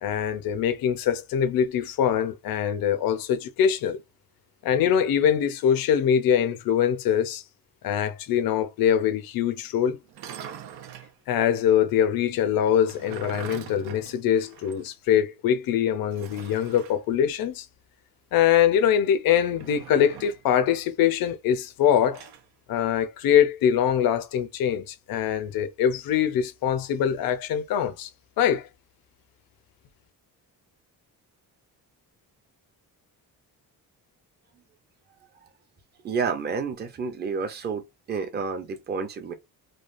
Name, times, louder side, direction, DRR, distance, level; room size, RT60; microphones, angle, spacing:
voice 1, 0.0-4.0 4.6-7.4 7.8-10.0 11.3-17.7 18.3-22.2 22.7-28.1 28.4-28.7, left 9 dB, 65° left, 0.6 m, -23 dB
sound 1, 10.1-11.1 12.7-14.9 15.2-15.3 16.1-17.0 19.5-20.5 21.8-22.5, right 9 dB, 90° right, 0.7 m, -43 dB
voice 2, 36.0-37.8 38.1-39.3, right 5 dB, 25° right, 0.5 m, -29 dB
3.2 x 2.3 x 2.5 m
cardioid pair, 180°, 38 cm